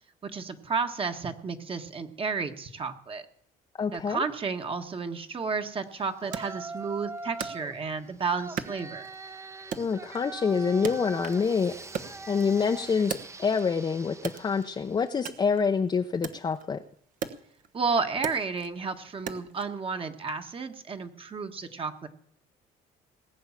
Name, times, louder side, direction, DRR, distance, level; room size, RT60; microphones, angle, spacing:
voice 1, 0.2-3.2 3.9-9.1 17.7-22.1, right 5 dB, 35° right, 6 dB, 1.5 m, -32 dB
voice 2, 3.8-4.2 9.8-11.7 12.0-16.8, left 5 dB, 25° left, 5 dB, 0.7 m, -27 dB
Yell, 6.2-7.8 8.3-15.0, right 3 dB, 15° right, 0.9 m, -42 dB
Wood, 6.3-8.1 8.6-9.3 9.7-11.5 11.8-13.8 14.2-19.7, right 7 dB, 50° right, 1.2 m, -39 dB
19.5 x 8.7 x 7.4 m, 0.64 s
cardioid pair, 110°, 17 cm